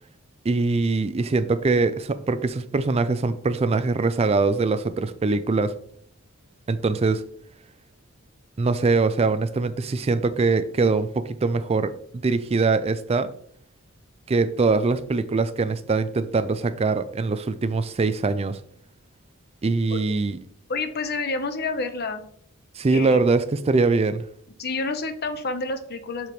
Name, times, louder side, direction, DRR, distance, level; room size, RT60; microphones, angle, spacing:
voice 1, 0.4-5.7 6.7-7.2 8.6-11.9 12.2-13.3 14.3-18.6 19.6-20.4 22.8-24.2, right 3 dB, 30° right, 13 dB, 0.4 m, -22 dB
voice 2, 20.7-22.2 22.9-23.2 24.6-26.3, left 3 dB, 50° left, 8 dB, 0.9 m, -29 dB
7.6 x 6.8 x 3.1 m, 0.63 s
head